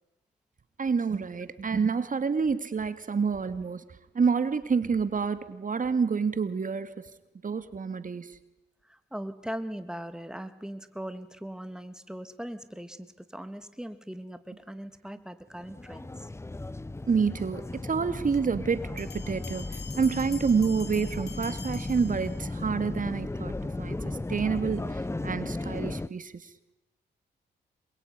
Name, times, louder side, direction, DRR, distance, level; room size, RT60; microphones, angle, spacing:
voice 1, 0.8-3.8 4.1-6.9 7.4-8.4 17.1-26.5, right 5 dB, 45° right, 12 dB, 2.4 m, -28 dB
voice 2, 8.9-16.3, equal, 5° right, 10 dB, 2.7 m, -40 dB
sound 1, 15.5-26.1, left 2 dB, 15° left, 0.9 m, -35 dB
sound 2, 19.0-22.8, left 6 dB, 65° left, 4.1 m, -46 dB
27.5 x 22.0 x 9.9 m, 0.96 s
cardioid pair, 65°, 19 cm